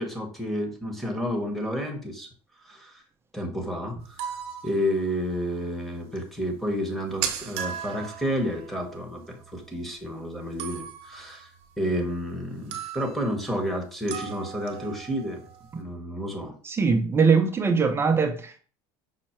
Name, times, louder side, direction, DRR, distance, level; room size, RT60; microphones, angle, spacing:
voice 1, 0.0-2.3 2.6-3.0 3.3-4.4 4.6-11.5 11.8-15.4 15.7-16.5, equal, ahead, 0.9 m, -30 dB
sound 1, 4.0-5.5 5.7-5.8 6.2-6.3 6.4-6.5 6.7-10.0 10.6-12.4 12.7-13.4 14.1-15.8, right 9 dB, 55° right, 0.8 m, -37 dB
voice 2, 16.6-18.6, right 5 dB, 20° right, 0.5 m, -22 dB
5.5 x 2.1 x 4.3 m
cardioid pair, 130°, 12 cm